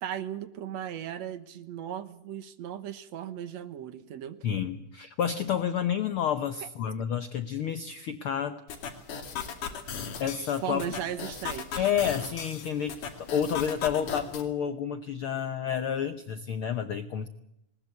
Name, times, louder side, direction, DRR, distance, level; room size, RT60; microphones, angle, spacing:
voice 1, 0.0-4.4 6.6-6.7 10.6-11.9, right 10 dB, 65° right, 13 dB, 2.1 m, -37 dB
voice 2, 4.4-8.6 10.2-10.9 11.8-17.3, left 8 dB, 70° left, 10 dB, 1.3 m, -30 dB
sound 1, 8.7-14.5, left 7 dB, 90° left, 3.9 m, -38 dB
20.0 x 19.5 x 8.3 m, 0.85 s
omnidirectional pair, 3.5 m